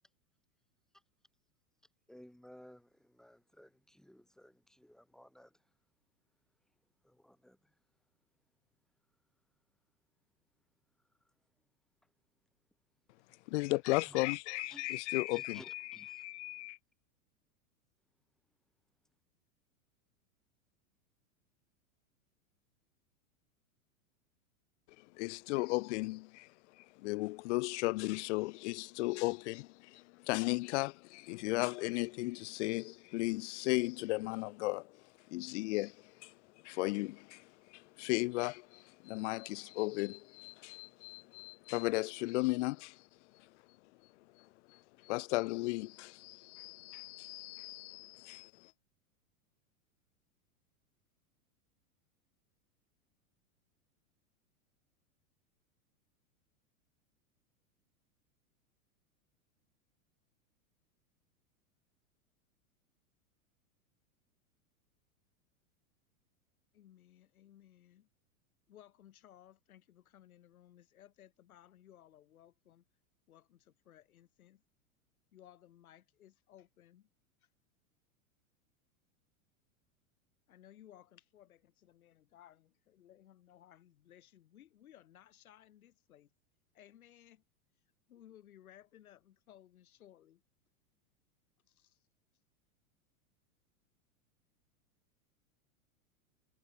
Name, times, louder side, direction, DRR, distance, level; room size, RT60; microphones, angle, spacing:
voice 1, 2.1-5.5 7.0-7.6 14.1-14.2 14.7-15.0 15.3-16.2, equal, ahead, 2.7 m, -57 dB
voice 2, 13.5-16.8 25.2-26.5 26.8-35.0 35.3-36.3 36.6-43.0 44.7-48.7, left 23 dB, 55° left, 0.7 m, -36 dB
voice 3, 66.7-68.1 68.7-72.8 73.3-74.6 75.3-77.1 80.5-86.3 86.7-87.4 88.1-90.4 91.7-92.0, left 11 dB, 75° left, 3.2 m, -60 dB
hypercardioid pair, 110°, 43 cm